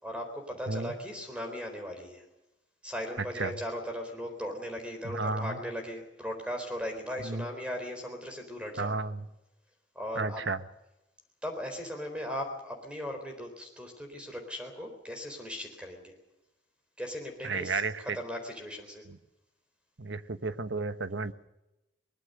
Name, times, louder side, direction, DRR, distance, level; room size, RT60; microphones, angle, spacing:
voice 1, 0.0-2.2 2.8-8.9 9.9-10.4 11.4-16.1 17.0-19.0, equal, 5° right, 4 dB, 4.1 m, -38 dB
voice 2, 5.0-5.6 7.2-7.4 8.8-9.3 10.1-10.6 17.4-18.2 19.1-19.2 20.0-21.3, right 3 dB, 70° right, 11 dB, 1.2 m, -32 dB
23.0 x 21.0 x 6.7 m, 0.94 s
head